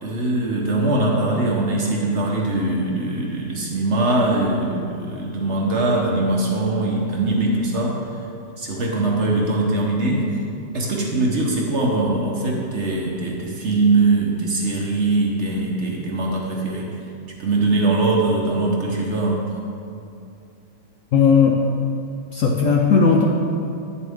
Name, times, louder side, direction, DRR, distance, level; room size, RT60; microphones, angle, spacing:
voice 1, 0.0-8.0 8.6-10.3 10.7-17.0 17.4-19.5, right 2 dB, 50° right, -2 dB, 1.1 m, -21 dB
voice 2, 21.1-21.6 22.3-23.3, left 5 dB, 65° left, 0 dB, 0.8 m, -16 dB
9.0 x 6.9 x 3.6 m, 2.5 s
omnidirectional pair, 1.8 m